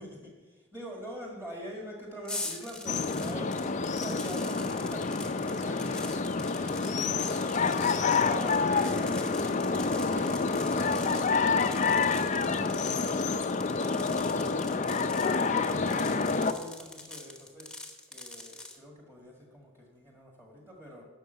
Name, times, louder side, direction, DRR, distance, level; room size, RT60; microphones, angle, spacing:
voice 1, 0.0-7.6 8.0-9.0 9.3-13.3 13.8-17.7 18.1-21.0, equal, 10° right, -2 dB, 1.9 m, -44 dB
sound 1, 2.3-18.8, left 2 dB, 5° left, 1.0 m, -44 dB
sound 2, 2.9-16.5, left 4 dB, 35° left, 0.4 m, -28 dB
11.5 x 6.5 x 7.9 m, 1.3 s
head